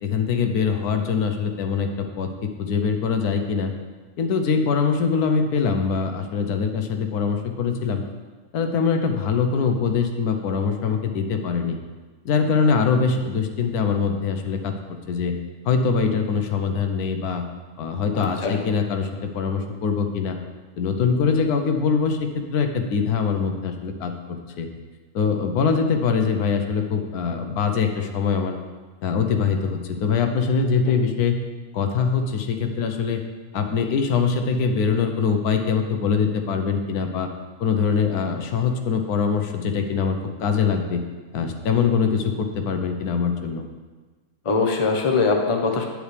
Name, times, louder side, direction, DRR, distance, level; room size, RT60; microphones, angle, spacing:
voice 1, 0.0-2.3 2.6-3.7 4.2-8.0 8.5-11.8 12.2-14.7 15.1-15.4 15.7-17.4 17.8-19.1 19.3-20.4 20.8-24.7 25.1-28.6 29.0-31.4 31.7-33.2 33.5-37.3 37.6-41.0 41.3-43.6, left 5 dB, 80° left, 5 dB, 1.2 m, -23 dB
voice 2, 18.1-18.6 30.9-31.0 44.4-45.8, left 4 dB, 30° left, 2 dB, 0.6 m, -22 dB
8.7 x 8.1 x 3.3 m, 1.3 s
omnidirectional pair, 1.6 m